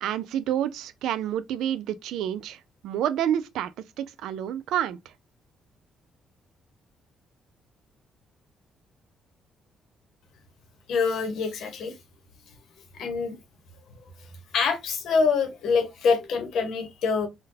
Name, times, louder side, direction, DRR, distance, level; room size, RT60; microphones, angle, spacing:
voice 1, 0.0-3.7 4.0-5.0, right 10 dB, 85° right, 0.3 m, -28 dB
voice 2, 10.9-11.9 13.0-13.3 14.5-17.3, left 5 dB, 75° left, 0.9 m, -25 dB
3.7 x 2.2 x 2.6 m
cardioid pair, 90°, 0 cm